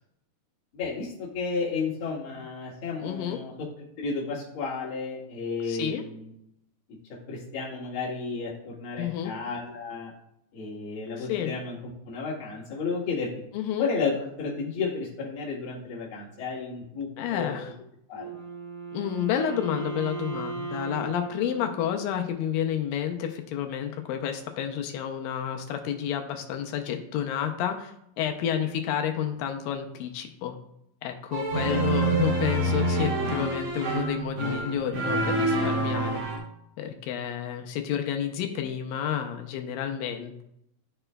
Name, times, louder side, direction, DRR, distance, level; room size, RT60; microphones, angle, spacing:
voice 1, 0.7-3.5 3.8-6.3 7.3-10.1 10.5-11.8 12.1-13.3 13.8-14.1 14.4-17.6 18.1-18.4, left 4 dB, 45° left, -5 dB, 2.2 m, -32 dB
voice 2, 3.0-3.4 5.7-6.0 9.0-9.3 11.2-11.5 13.5-13.9 17.2-17.7 18.9-30.5 31.0-36.2 36.8-40.4, left 9 dB, 85° left, 4 dB, 2.3 m, -30 dB
Wind instrument woodwind instrument, 18.1-22.3, right 4 dB, 25° left, 0.8 m, -37 dB
sound 1, 31.3-36.4, right 2 dB, 85° right, 3.3 m, -27 dB
12.5 x 4.4 x 2.2 m, 0.77 s
omnidirectional pair, 4.0 m